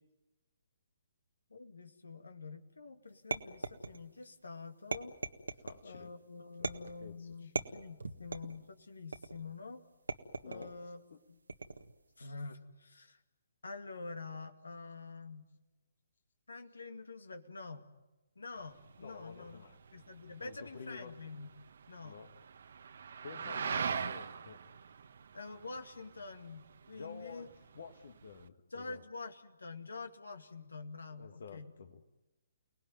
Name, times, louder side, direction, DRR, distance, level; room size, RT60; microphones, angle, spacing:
voice 1, 1.5-5.2 5.8-9.8 10.4-11.0 11.3-11.4 12.2-13.2 13.6-15.4 16.5-17.9 18.4-19.6 19.9-21.5 21.9-22.2 23.5-23.8 25.3-27.5 28.7-31.7, left 3 dB, 80° left, 7 dB, 2.3 m, -47 dB
sound 1, 3.3-4.2 4.9-5.8 6.6-7.1 7.6-8.6 9.1-9.5 10.1-10.7 11.5-12.0, right 3 dB, 85° right, 1.6 m, -39 dB
voice 2, 5.6-6.1 6.6-6.7 7.0-7.5 10.4-10.7 11.1-11.2 19.0-19.8 20.4-21.1 22.0-22.3 23.2-24.6 26.9-29.0 31.2-32.0, left 5 dB, 65° left, 5 dB, 1.8 m, -50 dB
sound 2, 18.6-28.5, right 6 dB, 60° right, 1.1 m, -43 dB
29.5 x 19.0 x 9.4 m, 1.1 s
figure-of-eight pair, 140°, 0 cm